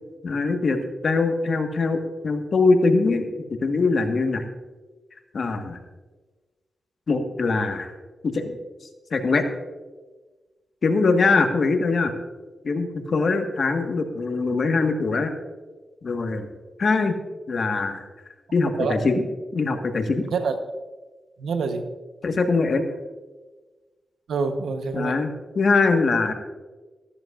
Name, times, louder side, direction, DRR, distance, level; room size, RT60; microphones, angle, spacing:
voice 1, 0.2-0.8 1.0-3.3 3.6-4.4 5.3-5.8 7.1-7.9 8.3-8.6 9.1-9.4 10.8-12.1 12.6-15.3 16.0-16.5 16.8-17.1 17.5-18.0 18.5-19.1 19.5-20.3 22.2-22.8 24.9-26.3, left 3 dB, 60° left, 5 dB, 1.4 m, -22 dB
voice 2, 18.8-19.2 20.2-20.5 21.4-21.9 24.3-25.2, right 4 dB, 85° right, 7 dB, 1.0 m, -26 dB
14.0 x 13.5 x 2.5 m, 1.3 s
cardioid pair, 60°, 0 cm